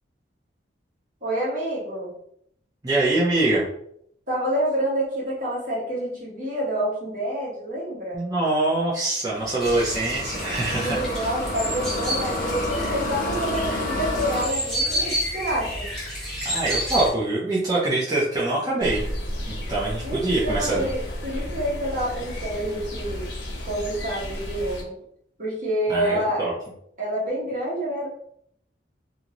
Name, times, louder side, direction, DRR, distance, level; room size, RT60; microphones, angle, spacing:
voice 1, 1.2-2.1 4.3-8.2 10.7-15.9 20.0-23.3 23.6-24.9 25.4-26.4 27.0-28.1, right 1 dB, 50° right, -5 dB, 1.2 m, -28 dB
voice 2, 2.8-3.6 8.1-11.0 16.4-19.0 19.5-20.9 25.9-26.5, right 2 dB, 20° right, -7 dB, 0.6 m, -24 dB
sound 1, 9.3-14.4, left 1 dB, 50° left, 0.6 m, -30 dB
sound 2, 9.6-17.1, equal, 5° left, 1.1 m, -30 dB
sound 3, 18.8-24.8, left 1 dB, 90° left, 0.8 m, -33 dB
2.7 x 2.5 x 3.0 m, 0.69 s
head